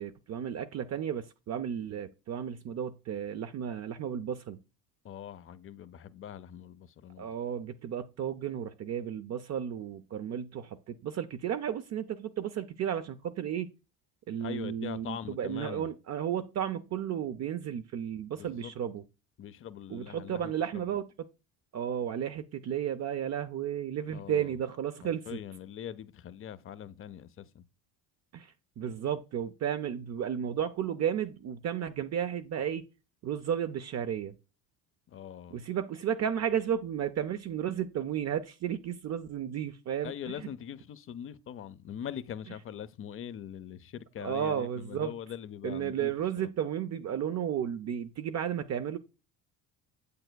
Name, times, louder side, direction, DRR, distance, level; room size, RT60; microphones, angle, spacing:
voice 1, 0.0-4.6 7.2-13.7 14.3-19.0 19.9-21.1 21.7-25.4 28.3-32.8 33.2-34.4 35.5-40.5 44.2-45.1 45.6-49.0, right 9 dB, 40° right, 0.5 m, -33 dB
voice 2, 5.0-7.3 14.4-15.9 18.4-18.7 19.4-20.8 24.1-24.6 25.0-27.6 35.1-35.6 40.0-46.1, left 9 dB, 30° left, 0.5 m, -42 dB
7.7 x 6.6 x 2.2 m
supercardioid pair, 95°, 42 cm